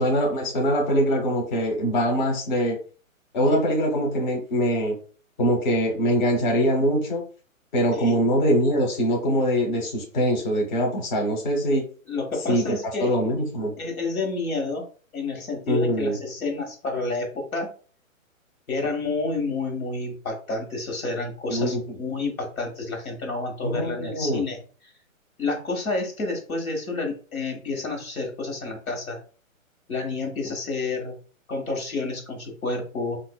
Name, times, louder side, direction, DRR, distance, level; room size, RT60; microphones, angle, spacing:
voice 1, 0.0-2.8 3.3-5.0 5.4-7.2 7.7-11.9 12.5-13.7 15.7-16.2 21.5-21.8 23.6-24.4, equal, 35° left, 0 dB, 0.9 m, -23 dB
voice 2, 12.1-13.1 13.8-14.9 15.1-17.7 18.7-24.6 25.4-29.2 29.9-31.2 31.5-33.2, left 3 dB, 85° left, 2 dB, 1.3 m, -29 dB
3.8 x 2.5 x 2.2 m, 0.39 s
hypercardioid pair, 155°, 41 cm